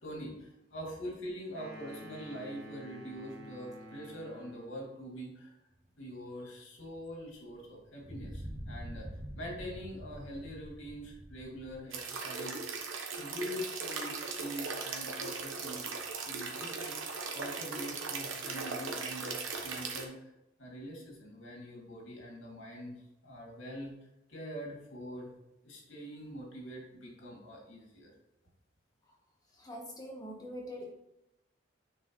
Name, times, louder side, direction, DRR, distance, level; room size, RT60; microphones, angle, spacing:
voice 1, 0.0-5.6 6.0-9.1 9.4-12.7 13.2-15.9 16.2-17.0 17.3-20.3 20.6-23.9 24.3-25.3 25.6-28.1, equal, 75° left, -3 dB, 2.5 m, -44 dB
sound 1, 1.5-4.9, equal, 55° right, 1.6 m, -49 dB
sound 2, 6.8-6.9 8.0-11.8, equal, 25° right, 1.0 m, -45 dB
sound 3, 11.9-20.0, right 4 dB, 85° right, 1.0 m, -38 dB
voice 2, 29.5-30.9, equal, 20° left, -1 dB, 1.2 m, -44 dB
9.1 x 4.6 x 3.1 m, 0.86 s
head